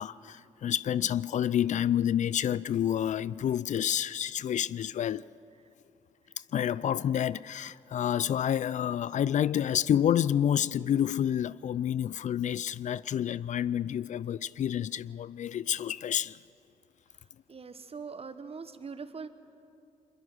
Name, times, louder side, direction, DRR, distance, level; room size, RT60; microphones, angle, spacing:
voice 1, 0.0-5.2 6.5-16.4, left 10 dB, 55° left, 0.4 m, -29 dB
voice 2, 17.5-19.3, right 5 dB, 40° right, 1.4 m, -42 dB
22.5 x 22.0 x 6.3 m
supercardioid pair, 50°, 15 cm